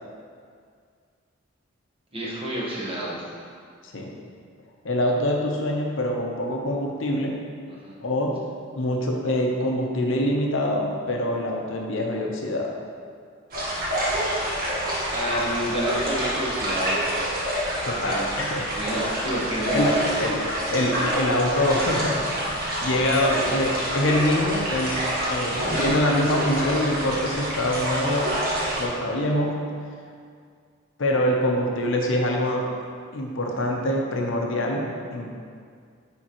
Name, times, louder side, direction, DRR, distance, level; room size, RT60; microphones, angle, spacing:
voice 1, 2.1-3.2 7.7-8.0 15.1-17.1 18.0-18.3 18.7-20.0 25.7-25.8, right 1 dB, 30° right, -6 dB, 1.1 m, -29 dB
voice 2, 4.8-7.4 8.0-8.4 8.8-12.8 17.8-18.7 19.0-19.1 19.7-20.4 20.7-25.0 25.2-28.3 28.8-29.6 31.0-32.7 33.1-35.3, left 1 dB, 70° left, 0 dB, 0.7 m, -25 dB
sound 1, 13.5-28.9, equal, 45° right, 1.4 m, -27 dB
8.8 x 3.6 x 2.9 m, 2.1 s
head